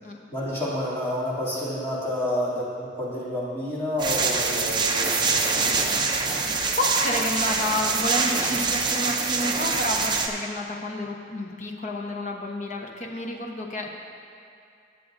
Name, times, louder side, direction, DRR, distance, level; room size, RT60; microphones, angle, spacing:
voice 1, 0.3-6.0, left 1 dB, 15° left, -10 dB, 2.8 m, -29 dB
sound 1, 4.0-10.3, right 4 dB, 25° right, 0.6 m, -24 dB
voice 2, 6.2-13.9, left 1 dB, 40° left, 1 dB, 1.1 m, -30 dB
19.5 x 7.7 x 2.7 m, 2.5 s
head